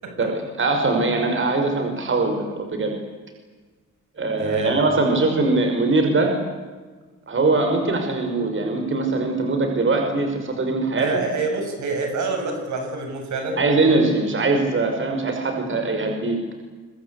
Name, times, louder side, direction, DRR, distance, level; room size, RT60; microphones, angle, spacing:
voice 1, 0.6-2.4 2.7-2.9 4.2-6.3 7.3-11.1 13.6-16.6, right 3 dB, 40° right, 4 dB, 5.6 m, -21 dB
voice 2, 4.4-4.8 11.0-13.6, right 3 dB, 70° right, 4 dB, 7.5 m, -27 dB
25.0 x 23.5 x 8.4 m, 1.3 s
cardioid pair, 90°, 30 cm